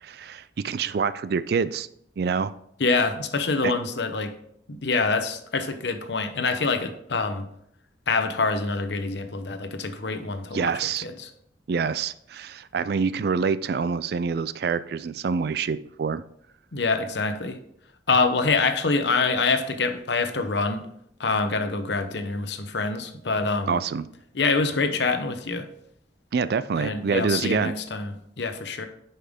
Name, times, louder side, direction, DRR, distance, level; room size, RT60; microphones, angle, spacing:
voice 1, 0.0-1.9 2.2-2.5 3.6-3.7 10.5-11.0 11.7-16.2 23.7-24.1 26.3-27.7, right 5 dB, 55° right, 15 dB, 0.3 m, -26 dB
voice 2, 2.8-4.3 4.7-7.5 8.1-10.7 11.0-11.3 16.7-17.6 18.1-20.8 21.2-23.8 24.3-25.7 26.8-28.9, left 4 dB, 65° left, 8 dB, 0.8 m, -25 dB
9.8 x 5.6 x 3.6 m, 0.72 s
head